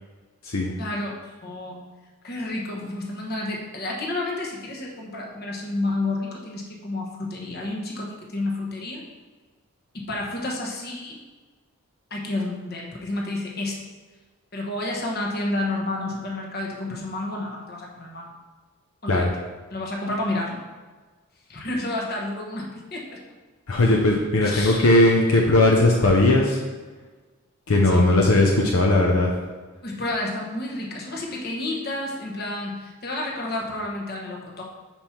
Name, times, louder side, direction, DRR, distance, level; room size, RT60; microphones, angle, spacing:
voice 1, 0.8-1.9 2.2-9.0 9.9-11.2 12.1-13.8 14.5-18.3 19.0-19.3 19.7-20.6 21.5-23.2 24.4-24.9 27.8-28.1 29.8-34.6, left 2 dB, 45° left, -1 dB, 1.2 m, -30 dB
voice 2, 23.7-26.6 27.7-29.3, left 2 dB, 70° left, 0 dB, 0.7 m, -18 dB
5.3 x 4.5 x 5.7 m, 1.3 s
head